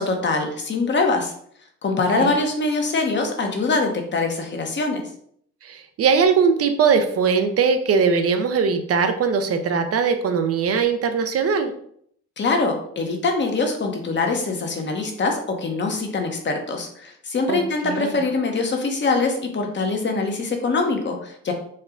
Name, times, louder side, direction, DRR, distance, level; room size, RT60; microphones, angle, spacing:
voice 1, 0.0-1.3 1.8-5.0 12.4-21.5, left 3 dB, 40° left, 3 dB, 0.9 m, -23 dB
voice 2, 1.9-2.3 5.6-11.7 17.5-18.2, right 5 dB, 50° right, 7 dB, 0.6 m, -21 dB
4.3 x 2.2 x 3.7 m, 0.64 s
cardioid pair, 90°, 30 cm